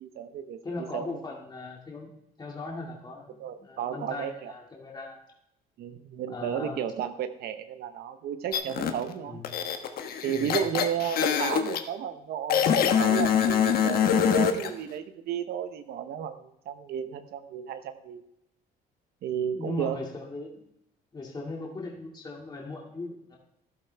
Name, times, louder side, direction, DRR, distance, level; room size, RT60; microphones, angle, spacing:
voice 1, 0.0-1.2 3.4-4.5 5.8-9.4 10.2-18.2 19.2-20.0, right 9 dB, 70° right, 8 dB, 0.8 m, -33 dB
voice 2, 0.6-2.1 2.4-5.2 6.3-6.8 9.2-9.6 10.3-10.6 19.5-20.6 21.1-23.4, left 2 dB, 25° left, -2 dB, 2.2 m, -39 dB
sound 1, 8.5-8.9 9.4-11.8 12.5-14.7, left 8 dB, 65° left, 1.2 m, -24 dB
13.0 x 12.0 x 3.4 m, 0.78 s
cardioid pair, 110°, 17 cm